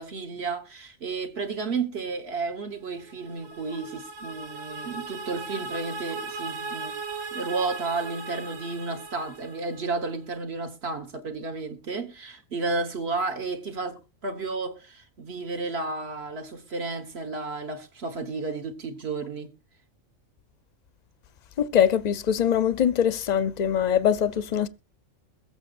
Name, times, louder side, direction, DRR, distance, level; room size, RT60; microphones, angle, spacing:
voice 1, 0.0-6.9 7.3-14.0 14.2-19.5, right 3 dB, 55° right, 1.6 m, -32 dB
sound 1, 2.9-10.1, right 3 dB, 90° right, 1.7 m, -38 dB
voice 2, 21.6-24.7, left 9 dB, 45° left, 0.6 m, -23 dB
22.5 x 8.1 x 2.5 m
omnidirectional pair, 1.3 m